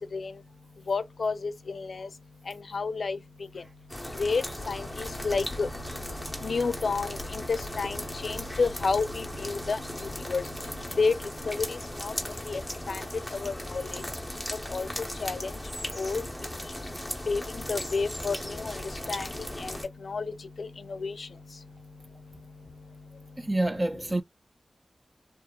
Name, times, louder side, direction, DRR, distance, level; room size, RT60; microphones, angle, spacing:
voice 1, 0.9-2.1 2.5-3.2 4.2-5.7 6.4-9.8 10.3-10.4 11.0-11.1 11.5-12.1 12.5-12.6 12.9-13.0 13.3-14.0 14.7-14.9 15.2-15.5 16.0-16.2 17.3-18.8 19.1-19.3 19.6-19.7 20.0-20.3 20.6-21.3, left 4 dB, 90° left, 0.4 m, -30 dB
sound 1, 3.9-19.8, left 1 dB, 5° left, 0.9 m, -37 dB
voice 2, 23.4-24.2, right 1 dB, 30° right, 0.4 m, -27 dB
2.8 x 2.3 x 2.2 m
wide cardioid pair, 85°, 0 cm